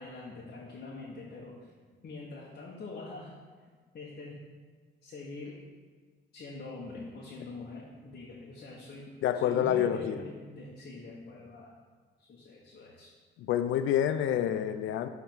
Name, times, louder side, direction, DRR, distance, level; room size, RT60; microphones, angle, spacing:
voice 1, 0.0-1.7 2.0-3.3 3.9-4.4 5.0-5.6 6.3-9.1 9.3-11.7 12.2-13.1, left 3 dB, 50° left, -4 dB, 1.1 m, -44 dB
voice 2, 9.2-10.2 13.4-15.1, left 10 dB, 85° left, 11 dB, 0.4 m, -28 dB
7.3 x 3.5 x 4.5 m, 1.5 s
cardioid pair, 90°, 20 cm